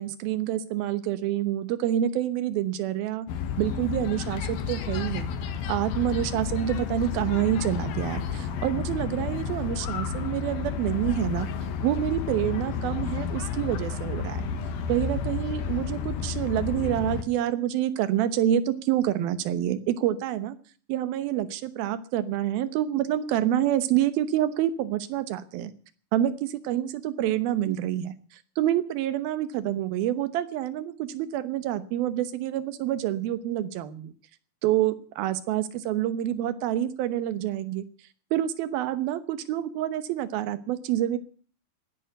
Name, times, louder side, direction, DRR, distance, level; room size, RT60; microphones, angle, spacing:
voice 1, 0.0-3.3 3.6-5.4 5.7-11.5 11.8-14.5 14.9-20.6 20.9-25.7 26.1-28.2 28.6-34.1 34.6-37.8 38.3-41.2, right 11 dB, 80° right, 14 dB, 2.9 m, -27 dB
sound 1, 3.3-17.2, left 6 dB, 75° left, 3.2 m, -31 dB
17.0 x 10.5 x 7.9 m, 0.43 s
omnidirectional pair, 4.3 m